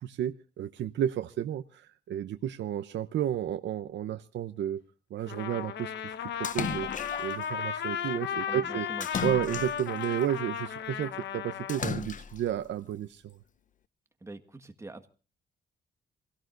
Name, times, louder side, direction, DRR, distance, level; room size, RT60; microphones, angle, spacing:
voice 1, 0.0-4.8 5.1-6.1 6.4-6.9 7.2-8.9 9.2-13.4, right 10 dB, 85° right, 9 dB, 0.8 m, -32 dB
Trumpet, 5.3-11.8, left 8 dB, 85° left, 1.2 m, -35 dB
Splash splatter, 6.4-7.4 9.0-10.1 11.7-12.5, left 7 dB, 45° left, 0.7 m, -35 dB
voice 2, 8.2-9.1 9.5-9.6 14.2-15.1, right 2 dB, 15° right, 7 dB, 1.6 m, -44 dB
27.0 x 17.5 x 2.6 m, 0.38 s
cardioid pair, 120°, 18 cm